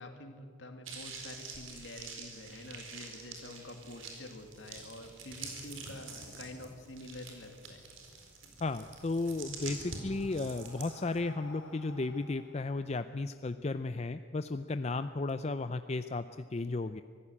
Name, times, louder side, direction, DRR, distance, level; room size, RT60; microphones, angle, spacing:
voice 1, 0.0-7.8, left 1 dB, 65° left, 5 dB, 2.5 m, -47 dB
sound 1, 0.8-11.2, right 4 dB, 80° right, 4.3 m, -46 dB
voice 2, 8.6-16.3 16.5-17.0, left 3 dB, 35° left, 10 dB, 0.5 m, -34 dB
Breathing, 9.4-13.7, left 1 dB, 80° left, 3.1 m, -55 dB
25.0 x 15.5 x 8.6 m, 2.2 s
head